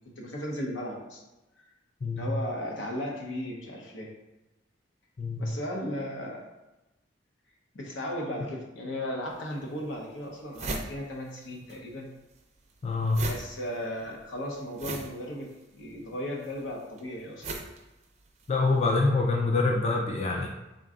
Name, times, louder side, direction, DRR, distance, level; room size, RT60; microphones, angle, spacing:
voice 1, 0.2-1.2 1.6-1.7 2.1-4.1 5.4-6.5 7.7-12.1 13.2-17.5, left 1 dB, 85° left, 0 dB, 0.8 m, -36 dB
voice 2, 2.0-2.3 5.2-5.4 12.8-13.3 18.5-20.5, left 3 dB, 35° left, 0 dB, 0.3 m, -25 dB
sound 1, 9.3-9.4 9.9-10.0 10.2-11.8 12.0-18.6, right 2 dB, 35° right, 0.4 m, -39 dB
3.7 x 2.3 x 3.6 m, 1.0 s
head